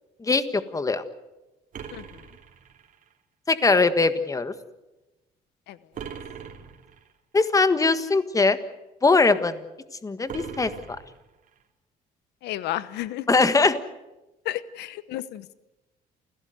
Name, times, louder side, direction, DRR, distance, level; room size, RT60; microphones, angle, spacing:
voice 1, 0.2-1.0 3.5-4.5 7.3-8.6 9.0-9.6 10.0-11.0 13.3-13.8, left 3 dB, 20° left, 11 dB, 1.6 m, -21 dB
sound 1, 1.7-3.1 5.9-7.1 10.3-11.6, right 7 dB, 50° right, 2.9 m, -41 dB
voice 2, 1.9-2.2 5.7-6.1 12.4-13.3 14.4-15.5, left 14 dB, 80° left, 15 dB, 1.0 m, -33 dB
29.0 x 16.5 x 8.0 m, 1.0 s
cardioid pair, 110°, 17 cm